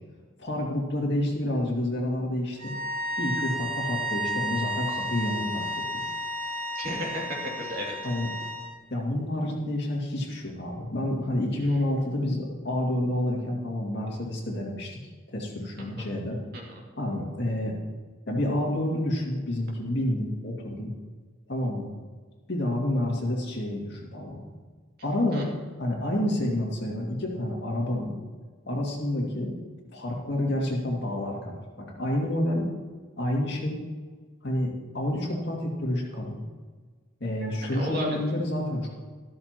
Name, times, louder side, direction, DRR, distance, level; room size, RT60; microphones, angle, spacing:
voice 1, 0.4-2.7 3.2-5.7 5.9-6.1 8.0-8.3 8.9-16.4 17.0-17.7 18.3-20.9 21.5-21.9 22.5-24.4 25.0-25.5 25.8-28.1 28.7-29.5 29.9-32.7 33.2-33.8 34.4-36.4 37.2-38.9, left 1 dB, 55° left, -2 dB, 2.3 m, -29 dB
sound 1, 2.6-8.7, equal, 65° right, 3.6 m, -32 dB
voice 2, 6.7-8.0 15.8-16.1 16.5-16.8 25.3-25.4 37.4-38.2, equal, 50° right, -2 dB, 2.5 m, -34 dB
13.0 x 13.0 x 3.0 m, 1.5 s
head